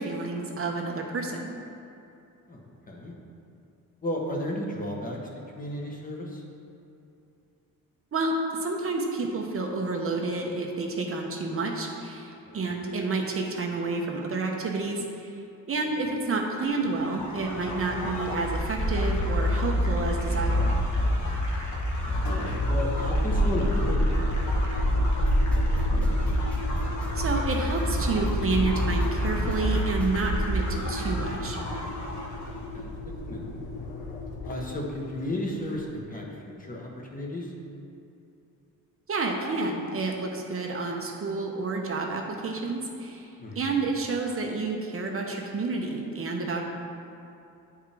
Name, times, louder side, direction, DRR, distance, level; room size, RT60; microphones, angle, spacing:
voice 1, 0.0-1.5 8.1-15.3 15.7-20.8 27.1-31.6 39.1-46.6, right 3 dB, 40° right, 1 dB, 0.8 m, -29 dB
voice 2, 2.5-3.1 4.0-5.2 5.5-6.4 12.5-12.7 22.0-25.0 32.4-32.9 33.2-33.6 34.4-37.5 43.4-43.7, left 1 dB, 25° left, -1 dB, 1.1 m, -34 dB
sound 1, 16.9-32.6, equal, 55° left, 1.4 m, -27 dB
Engine, 22.1-36.1, left 4 dB, 80° left, 1.0 m, -39 dB
sound 2, 25.1-30.2, left 2 dB, 5° left, 0.7 m, -43 dB
9.8 x 4.9 x 3.4 m, 2.7 s
cardioid pair, 130°, 36 cm